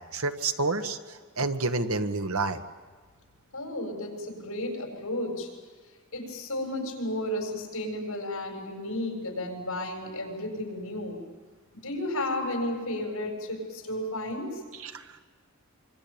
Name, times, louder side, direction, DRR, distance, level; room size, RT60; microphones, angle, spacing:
voice 1, 0.1-1.0 1.4-2.6 14.8-15.0, right 3 dB, 75° right, 7 dB, 1.6 m, -28 dB
voice 2, 3.5-5.5 6.1-11.2 11.7-14.6, left 1 dB, 75° left, 2 dB, 7.3 m, -33 dB
25.5 x 25.5 x 8.8 m, 1.4 s
head